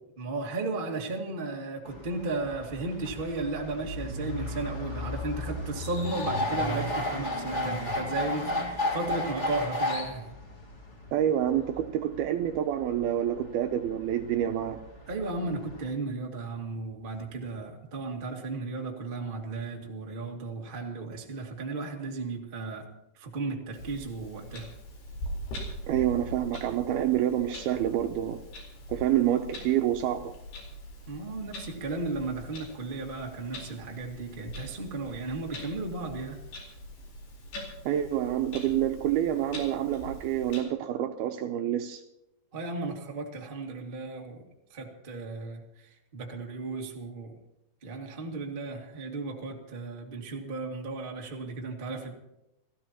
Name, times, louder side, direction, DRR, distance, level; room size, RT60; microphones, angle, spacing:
voice 1, 0.2-10.3 15.1-24.7 31.1-36.4 42.5-47.4 47.8-52.1, right 3 dB, 25° right, 1.1 m, -35 dB
sound 1, 1.8-15.9, left 1 dB, 85° left, 0.6 m, -34 dB
voice 2, 11.1-14.8 25.9-28.4 28.9-30.3 37.9-42.0, right 11 dB, 75° right, 2.4 m, -27 dB
Clock, 23.7-40.6, left 1 dB, 65° left, 6.1 m, -42 dB
29.5 x 15.5 x 3.0 m
omnidirectional pair, 4.9 m